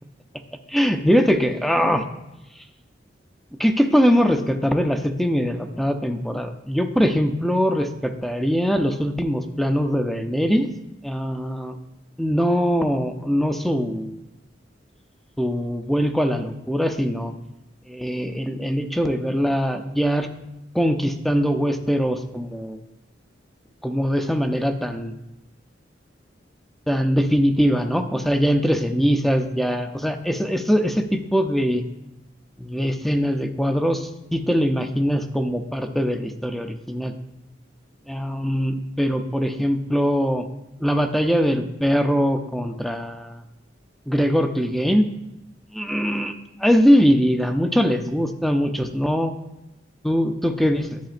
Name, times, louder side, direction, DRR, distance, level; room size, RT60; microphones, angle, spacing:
voice 1, 0.7-2.0 3.6-10.7 11.0-11.8 12.2-14.2 15.4-17.3 17.9-20.3 20.7-22.8 23.8-25.1 26.9-31.8 32.6-37.1 38.1-40.4 40.8-43.4 44.1-45.1 45.7-46.3 46.6-49.3 50.0-51.0, equal, ahead, 7 dB, 0.4 m, -22 dB
10.5 x 7.8 x 2.5 m, 0.92 s
head